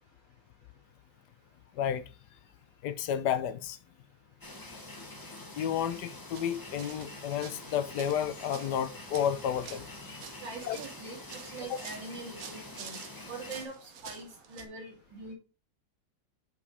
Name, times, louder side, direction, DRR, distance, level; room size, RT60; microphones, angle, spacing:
voice 1, 2.8-3.8 5.6-10.2 10.6-10.8, left 9 dB, 70° left, 1.1 m, -31 dB
sound 1, 4.4-13.7, left 2 dB, 15° left, 0.8 m, -46 dB
sound 2, 6.3-14.7, right 7 dB, 55° right, 1.2 m, -49 dB
voice 2, 10.4-13.0 13.3-15.3, right 3 dB, 85° right, 2.9 m, -43 dB
6.8 x 5.2 x 4.1 m
omnidirectional pair, 2.0 m